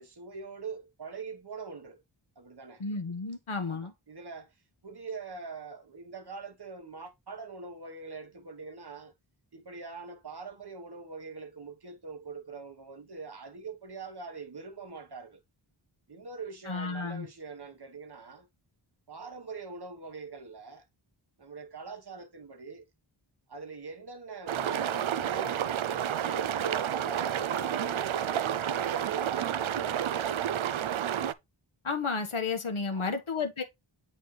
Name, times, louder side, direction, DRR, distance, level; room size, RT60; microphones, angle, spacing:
voice 1, 0.0-2.0 2.4-2.8 3.6-4.5 4.8-9.1 9.5-15.4 16.1-18.5 19.1-20.9 21.4-22.9 23.5-30.3 32.9-33.2, right 4 dB, 50° right, 1.3 m, -43 dB
voice 2, 2.8-3.9 16.7-17.3 31.8-33.6, left 4 dB, 80° left, 1.5 m, -32 dB
sound 1, 24.5-31.3, right 9 dB, 75° right, 0.6 m, -30 dB
8.3 x 4.2 x 3.2 m
wide cardioid pair, 50°, 49 cm